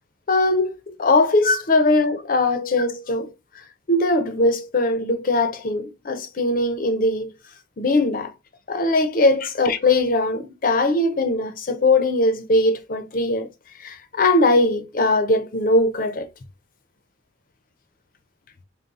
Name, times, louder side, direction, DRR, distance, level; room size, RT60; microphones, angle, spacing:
voice 1, 0.3-3.3 3.9-7.3 7.8-8.3 8.7-13.5 13.8-16.3, left 2 dB, 50° left, 0.6 m, -20 dB
4.0 x 2.2 x 3.7 m
head